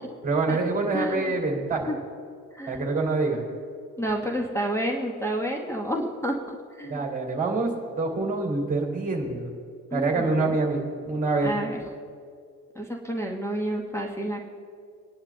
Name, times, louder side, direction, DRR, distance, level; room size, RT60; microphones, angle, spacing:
voice 1, 0.2-1.9 2.7-3.4 6.9-7.7 8.0-9.5 9.9-11.5, right 3 dB, 15° right, 1 dB, 2.5 m, -26 dB
voice 2, 0.9-1.3 1.9-2.0 2.6-2.9 4.0-6.4 6.8-7.0 9.9-10.6 11.4-11.8 12.7-14.5, equal, 5° left, -3 dB, 1.2 m, -29 dB
28.5 x 10.0 x 2.2 m, 2.2 s
figure-of-eight pair, 60°, 48 cm